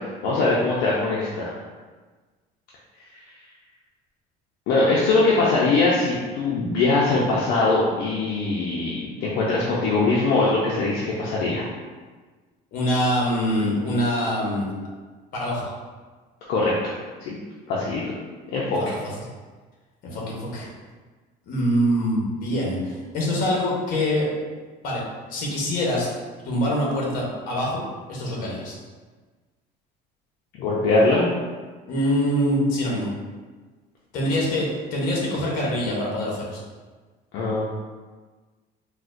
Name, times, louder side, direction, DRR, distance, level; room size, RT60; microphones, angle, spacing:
voice 1, 0.0-1.5 4.7-11.7 16.5-16.7 17.3-17.4 17.7-18.0 18.5-18.8 30.6-31.3 37.3-37.7, left 3 dB, 65° left, -5 dB, 0.5 m, -22 dB
voice 2, 12.7-14.7 15.3-15.7 20.1-20.7 21.5-24.3 24.8-25.0 25.3-26.1 26.4-27.8 28.1-28.7 31.9-33.1 34.1-36.6, equal, 50° left, -4 dB, 0.9 m, -24 dB
4.1 x 2.1 x 2.5 m, 1.4 s
cardioid pair, 170°, 18 cm